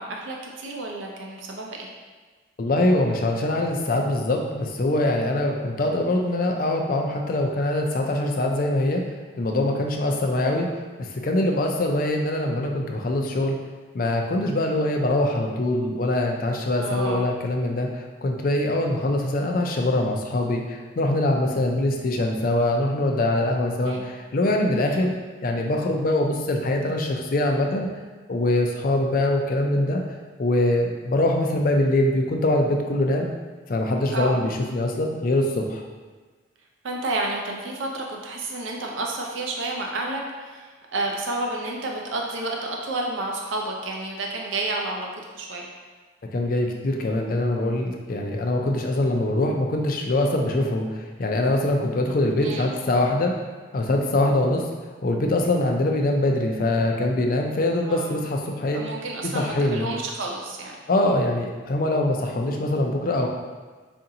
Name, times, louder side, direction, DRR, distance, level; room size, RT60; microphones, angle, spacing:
voice 1, 0.0-1.9 16.8-17.3 23.8-24.1 34.1-34.4 36.8-45.1 45.3-45.7 52.4-52.7 57.8-58.2 58.7-60.8, right 2 dB, 80° right, 0 dB, 0.6 m, -30 dB
voice 2, 2.6-9.0 9.4-10.7 11.0-13.6 13.9-25.1 25.4-27.9 28.3-30.0 30.4-33.3 33.7-35.8 46.3-53.3 53.7-54.7 55.0-58.8 59.2-59.9 60.9-63.3, left 1 dB, 45° left, 2 dB, 0.4 m, -23 dB
4.8 x 2.6 x 2.7 m, 1.4 s
head